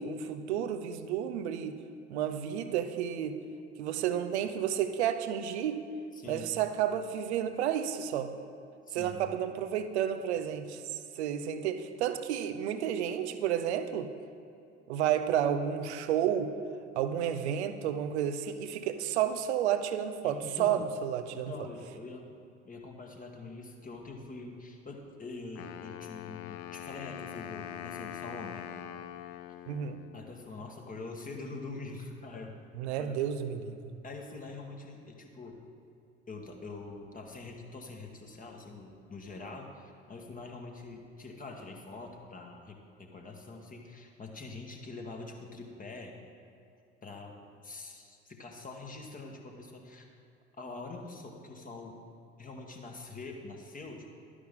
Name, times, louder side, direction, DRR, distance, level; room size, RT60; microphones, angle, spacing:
voice 1, 0.0-1.8 2.1-3.4 3.8-5.8 6.3-8.3 8.9-10.8 11.2-14.1 14.9-16.5 17.0-21.5 29.7-30.0 32.8-33.8, right 9 dB, 65° right, 9 dB, 0.7 m, -31 dB
voice 2, 6.1-6.5 8.9-9.3 20.2-20.8 21.3-22.3 22.6-28.7 30.1-32.6 33.0-33.2 34.0-35.6 36.3-46.1 47.0-47.3 47.6-50.1 50.6-51.9 52.4-54.1, left 3 dB, 25° left, 1 dB, 1.4 m, -44 dB
Wind instrument woodwind instrument, 25.5-30.5, left 10 dB, 50° left, 0.5 m, -43 dB
11.5 x 9.8 x 3.7 m, 2.6 s
figure-of-eight pair, 55°, 35 cm